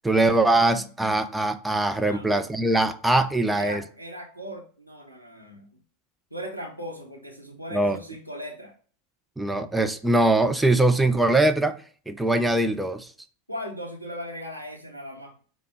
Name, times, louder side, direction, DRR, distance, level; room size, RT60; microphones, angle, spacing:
voice 1, 0.0-3.8 7.7-8.0 9.4-11.8 12.1-13.1, right 2 dB, 5° right, 0.4 m, -22 dB
voice 2, 3.5-5.7 6.3-8.7 13.5-15.3, equal, 90° right, 0.7 m, -38 dB
5.0 x 2.0 x 4.7 m
figure-of-eight pair, 90°, 0 cm